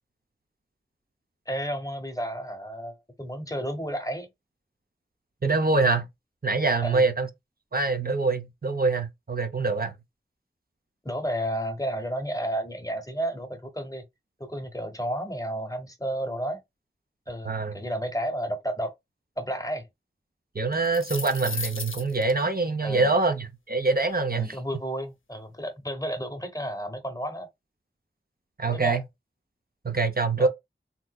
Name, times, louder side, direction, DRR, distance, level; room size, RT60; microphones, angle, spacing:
voice 1, 1.5-4.3 6.8-7.1 11.0-14.0 14.4-16.6 17.3-18.9 19.4-19.9 22.8-23.1 24.3-27.5 28.7-29.0 30.4-30.5, equal, 15° left, 0.8 m, -32 dB
voice 2, 5.4-6.1 6.4-7.3 7.7-9.9 17.4-17.7 20.5-24.6 28.6-29.0 29.8-30.5, right 3 dB, 50° right, 0.6 m, -24 dB
sound 1, 20.7-22.3, left 5 dB, 80° left, 0.6 m, -35 dB
3.5 x 2.8 x 2.3 m
wide cardioid pair, 40°, 20 cm